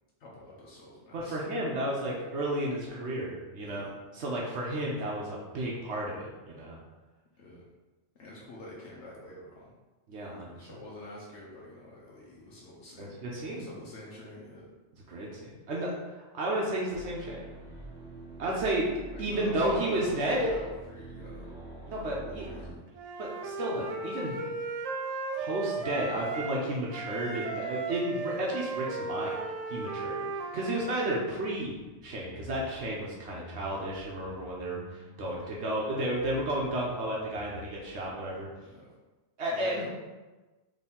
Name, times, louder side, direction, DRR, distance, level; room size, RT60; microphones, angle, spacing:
voice 1, 0.2-1.4 3.6-3.9 7.4-7.6 8.2-9.7 10.6-13.2 13.5-14.7 19.1-21.5 22.1-22.8 35.4-35.6 36.0-36.1 38.6-38.9 39.5-39.9, left 1 dB, 85° left, -4 dB, 1.1 m, -46 dB
voice 2, 1.1-6.8 10.1-10.5 13.0-13.7 15.1-17.4 18.4-18.9 19.2-20.5 21.9-22.5 23.2-24.4 25.4-29.4 29.7-30.2 30.5-31.7 32.0-38.5 39.4-39.9, right 1 dB, 75° right, -4 dB, 1.1 m, -32 dB
sound 1, 16.9-22.7, right 2 dB, 5° right, 1.3 m, -45 dB
Wind instrument woodwind instrument, 22.9-26.6 26.9-30.9, right 3 dB, 60° right, 0.4 m, -36 dB
sound 2, 31.5-38.4, left 3 dB, 40° left, 0.5 m, -51 dB
4.3 x 3.3 x 3.7 m, 1.2 s
omnidirectional pair, 1.1 m